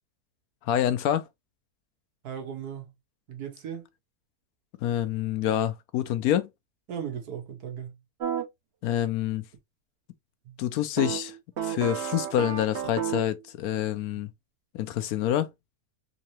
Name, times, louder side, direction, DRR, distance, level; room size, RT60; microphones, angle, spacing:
voice 1, 0.6-1.3 4.8-6.5 8.8-9.4 10.6-11.4 11.6-14.3 14.7-15.5, left 11 dB, 75° left, 1.0 m, -27 dB
voice 2, 2.2-2.8 3.3-3.9 6.9-7.9 10.5-10.6, right 8 dB, 85° right, 1.6 m, -37 dB
yosh blues guitar, 8.2-8.4 11.0-13.4, right 9 dB, 55° right, 0.8 m, -32 dB
3.8 x 2.7 x 3.0 m
omnidirectional pair, 1.6 m